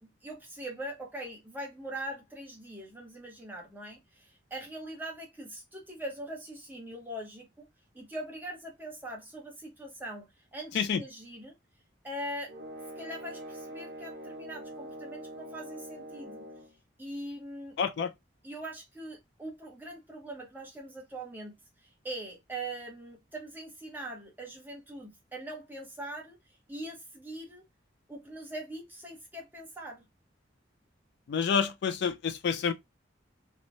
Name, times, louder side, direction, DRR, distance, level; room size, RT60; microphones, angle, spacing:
voice 1, 0.0-7.7 7.9-11.5 12.0-12.5 13.0-16.5 17.0-17.8 18.4-21.5 22.0-26.4 26.7-27.6 28.1-30.0, right 1 dB, 10° right, 0.8 m, -42 dB
sound 1, 12.5-16.7, equal, 70° right, 0.7 m, -44 dB
voice 2, 17.8-18.1 31.3-32.7, left 6 dB, 60° left, 0.3 m, -28 dB
3.0 x 2.1 x 2.5 m
head